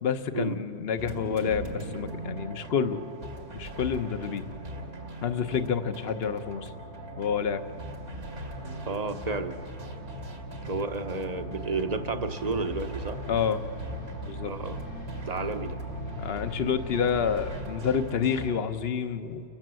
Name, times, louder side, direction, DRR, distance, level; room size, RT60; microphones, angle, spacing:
voice 1, 0.0-3.1 3.5-4.4 5.2-6.7 7.2-7.6 13.3-13.6 13.9-14.5 16.1-19.4, left 7 dB, 50° left, 9 dB, 1.1 m, -29 dB
sound 1, 1.0-18.6, right 1 dB, 75° right, 2.5 m, -41 dB
sound 2, 4.4-17.6, equal, 85° left, 3.2 m, -41 dB
voice 2, 8.8-9.6 10.7-13.2 14.4-14.8 15.2-15.8, right 3 dB, 30° right, 8 dB, 0.9 m, -31 dB
30.0 x 15.0 x 7.6 m, 2.7 s
omnidirectional pair, 1.5 m